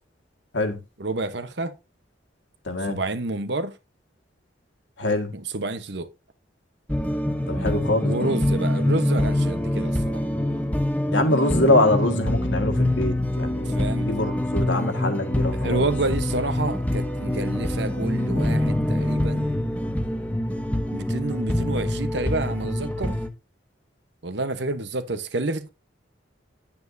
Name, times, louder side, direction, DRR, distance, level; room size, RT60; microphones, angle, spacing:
voice 1, 1.0-1.8 2.8-3.8 5.3-6.1 8.0-10.2 13.6-14.1 15.5-19.5 20.9-23.2 24.2-25.7, right 2 dB, 60° right, 1.0 m, -29 dB
voice 2, 2.7-3.0 5.0-5.3 7.5-8.2 11.1-15.9, left 2 dB, 80° left, 1.8 m, -24 dB
sound 1, 6.9-23.3, left 1 dB, 10° left, 0.8 m, -25 dB
9.6 x 8.8 x 2.7 m
head